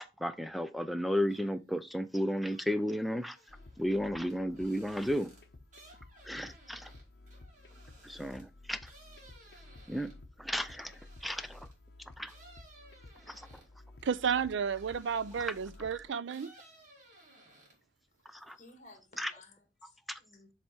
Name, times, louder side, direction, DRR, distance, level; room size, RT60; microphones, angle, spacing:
voice 1, 0.2-3.4 3.8-5.3 6.2-6.9 8.0-8.9 9.9-10.1 10.4-11.7 12.2-12.3 13.3-13.5 15.4-15.5 18.3-18.6 19.2-19.3 20.1-20.2, equal, ahead, 0.3 m, -33 dB
sound 1, 1.2-1.8 2.1-11.8 12.2-15.9 16.3-18.0 18.3-18.9, right 2 dB, 40° right, 1.9 m, -60 dB
sound 2, 3.5-16.1, left 2 dB, 55° left, 0.8 m, -54 dB
voice 2, 14.0-16.5, right 7 dB, 80° right, 0.4 m, -32 dB
voice 3, 18.2-20.5, left 2 dB, 40° left, 1.6 m, -58 dB
7.4 x 3.4 x 4.3 m
head